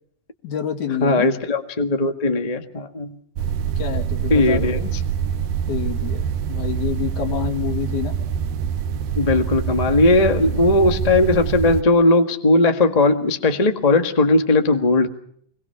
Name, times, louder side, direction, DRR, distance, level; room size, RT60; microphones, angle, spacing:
voice 1, 0.4-1.3 3.8-4.9 5.7-8.2, left 8 dB, 65° left, 5 dB, 3.9 m, -27 dB
voice 2, 1.0-3.2 4.3-4.8 9.2-15.1, left 2 dB, 20° left, 6 dB, 0.9 m, -18 dB
sound 1, 3.4-11.8, right 8 dB, 85° right, 2.8 m, -25 dB
26.0 x 22.5 x 5.8 m, 0.64 s
omnidirectional pair, 3.8 m